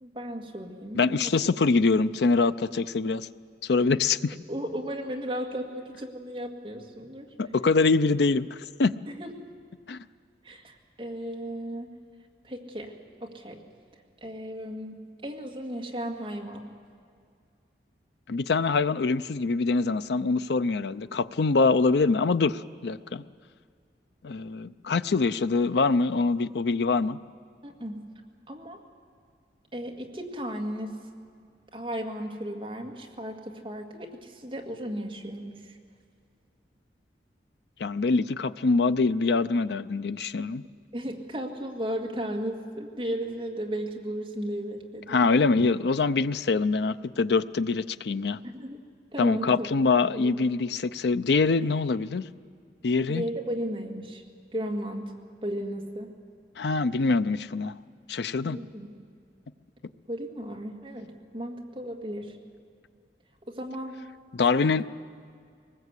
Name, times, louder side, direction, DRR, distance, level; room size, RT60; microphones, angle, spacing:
voice 1, 0.0-1.3 4.5-7.3 9.1-9.5 10.4-11.9 12.4-12.9 13.2-13.6 14.2-16.7 27.6-28.0 28.5-28.8 29.7-31.0 31.7-35.7 40.9-45.2 48.4-48.8 49.1-49.7 50.1-50.3 53.1-54.2 54.5-55.1 55.4-56.1 58.4-59.0 60.1-62.4 63.5-63.9 64.6-64.8, equal, 30° right, 0 dB, 2.0 m, -35 dB
voice 2, 0.9-3.3 3.6-4.4 7.4-8.9 9.9-10.0 18.3-23.2 24.2-27.2 37.8-40.6 45.1-48.4 49.2-52.3 52.8-53.2 56.6-57.7 58.1-58.6 64.3-64.9, left 4 dB, 70° left, 13 dB, 0.5 m, -24 dB
22.0 x 20.0 x 8.3 m, 2.2 s
head